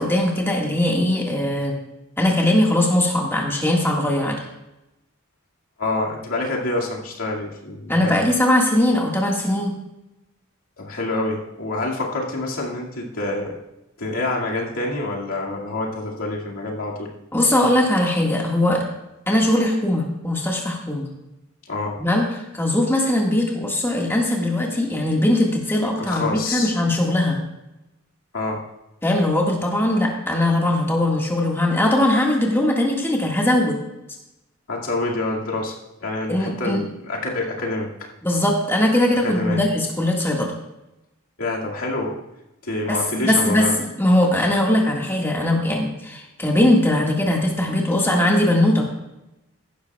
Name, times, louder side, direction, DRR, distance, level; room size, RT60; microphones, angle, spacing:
voice 1, 0.0-1.7 2.2-4.4 7.9-9.7 17.3-18.8 19.3-21.1 22.0-22.3 22.5-27.4 29.0-33.8 36.3-36.8 38.2-40.5 42.9-43.7 44.0-48.8, left 1 dB, 10° left, -1 dB, 1.8 m, -20 dB
voice 2, 5.8-8.3 10.8-13.6 14.0-17.1 21.7-22.0 26.0-26.7 28.3-28.6 34.7-35.8 36.0-37.9 39.2-39.6 41.4-42.2 42.6-43.8, left 2 dB, 90° left, -3 dB, 2.2 m, -27 dB
15.5 x 11.5 x 2.4 m, 0.93 s
head